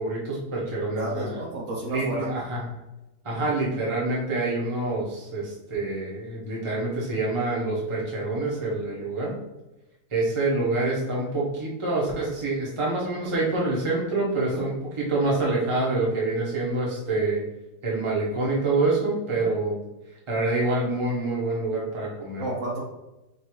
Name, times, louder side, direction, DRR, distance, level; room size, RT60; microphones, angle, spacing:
voice 1, 0.0-1.4 1.9-2.6 3.2-9.4 10.1-17.4 17.8-19.8 20.3-22.4, right 2 dB, 20° right, -5 dB, 0.9 m, -26 dB
voice 2, 0.9-2.3 14.5-14.7 19.4-19.5 22.4-22.8, right 2 dB, 55° right, -4 dB, 1.1 m, -31 dB
5.3 x 2.7 x 3.1 m, 1.0 s
omnidirectional pair, 1.8 m